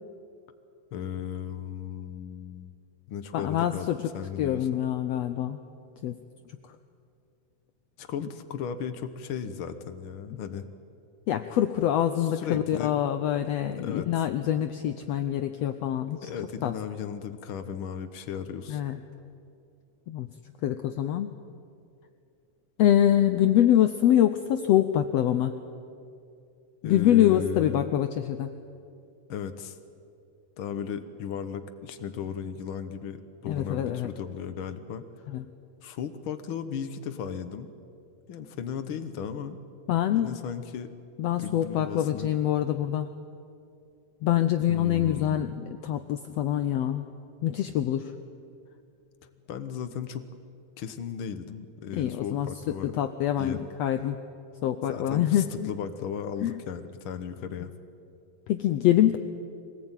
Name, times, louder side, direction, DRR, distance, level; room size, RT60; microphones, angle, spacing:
voice 1, 0.9-2.7 3.1-3.9 4.1-4.8 8.0-10.6 12.2-12.9 13.8-14.1 16.2-18.8 26.8-27.9 29.3-29.8 30.6-35.0 35.8-37.7 38.3-39.6 40.1-40.9 41.4-42.3 44.7-45.6 49.5-50.2 50.8-52.9 53.4-53.7 54.9-57.7, left 7 dB, 65° left, 9 dB, 1.3 m, -36 dB
voice 2, 3.3-4.1 4.4-5.6 6.0-6.2 11.3-16.3 16.6-16.7 18.7-19.0 20.1-20.3 20.6-21.3 22.8-25.6 26.8-28.5 33.5-34.1 35.3-35.4 39.9-40.4 41.2-43.1 44.2-47.1 47.4-48.1 51.9-54.2 54.6-55.7 56.4-56.6 58.5-59.2, left 11 dB, 90° left, 8 dB, 1.4 m, -25 dB
24.0 x 18.5 x 9.0 m, 2.5 s
omnidirectional pair, 3.8 m